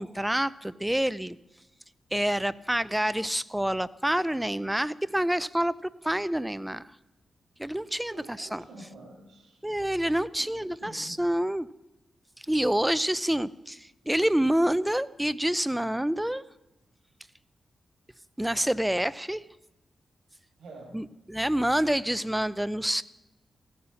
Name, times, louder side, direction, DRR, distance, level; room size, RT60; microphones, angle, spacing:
voice 1, 0.0-1.4 2.1-6.8 7.6-8.6 9.6-11.7 12.5-16.4 18.4-19.4 20.9-23.0, right 1 dB, 5° right, 17 dB, 0.6 m, -27 dB
voice 2, 8.1-9.6 10.3-11.2 20.6-21.0, right 2 dB, 80° right, -1 dB, 7.0 m, -48 dB
16.0 x 14.0 x 5.8 m, 1.0 s
cardioid pair, 60°, 0 cm